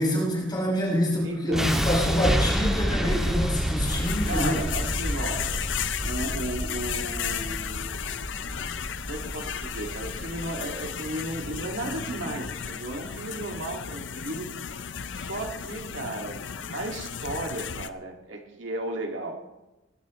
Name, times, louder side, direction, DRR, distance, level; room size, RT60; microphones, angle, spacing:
voice 1, 0.0-4.6, equal, 25° left, -4 dB, 5.6 m, -26 dB
voice 2, 1.2-1.8 4.2-5.6 6.0-8.2 9.0-14.8 15.1-16.4 16.7-19.4, right 2 dB, 80° right, 2 dB, 2.2 m, -35 dB
sound 1, 1.5-13.6, equal, 5° right, 2.1 m, -30 dB
sound 2, 3.9-17.9, left 8 dB, 70° left, 0.6 m, -34 dB
21.5 x 12.0 x 3.1 m, 0.99 s
head